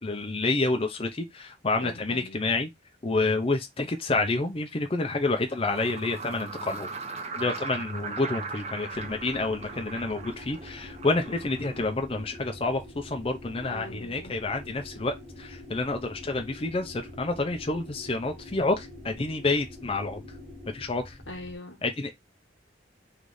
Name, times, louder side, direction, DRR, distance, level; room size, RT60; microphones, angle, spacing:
voice 1, 0.0-2.7 3.0-6.9 7.4-20.2 20.7-21.1 21.8-22.1, left 3 dB, 30° left, 0.6 m, -29 dB
voice 2, 1.8-2.4 13.6-14.4 21.3-21.8, left 1 dB, 90° left, 1.4 m, -41 dB
sound 1, 3.6-3.7 5.2-11.9, right 4 dB, 35° right, 0.7 m, -39 dB
sound 2, 8.9-21.6, left 1 dB, 10° right, 1.4 m, -45 dB
3.3 x 3.2 x 3.9 m
head